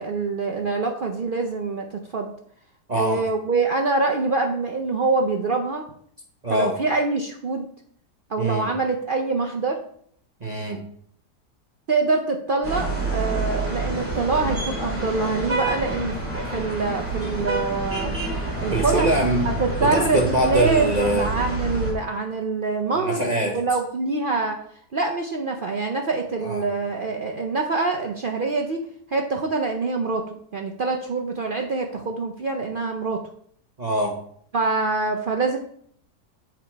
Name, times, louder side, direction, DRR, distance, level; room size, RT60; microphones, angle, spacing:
voice 1, 0.0-2.3 2.9-5.8 6.5-7.7 8.3-9.8 11.9-18.2 18.6-19.1 19.6-24.6 24.9-28.8 29.1-33.2 34.5-35.6, right 3 dB, 80° right, 2 dB, 0.4 m, -25 dB
voice 2, 2.9-3.2 6.4-6.8 8.4-8.7 10.4-10.8 18.7-19.5 19.8-21.3 23.0-23.6 26.4-26.7 33.8-34.2, right 1 dB, 35° right, 1 dB, 0.7 m, -23 dB
sound 1, 12.6-21.9, right 2 dB, 10° right, 2.7 m, -28 dB
7.8 x 5.1 x 4.5 m, 0.64 s
omnidirectional pair, 1.8 m